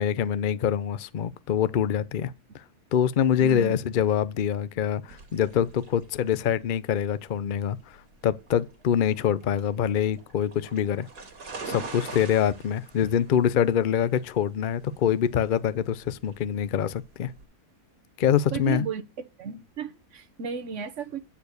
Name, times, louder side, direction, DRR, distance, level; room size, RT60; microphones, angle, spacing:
voice 1, 0.0-2.6 2.9-11.1 11.6-17.3 18.2-18.8, left 9 dB, 75° left, 0.4 m, -25 dB
voice 2, 3.4-3.8 18.5-19.0 19.4-21.2, right 7 dB, 55° right, 1.4 m, -33 dB
sound 1, 5.1-17.4, right 4 dB, 75° right, 2.4 m, -44 dB
9.9 x 4.7 x 6.5 m
omnidirectional pair, 1.7 m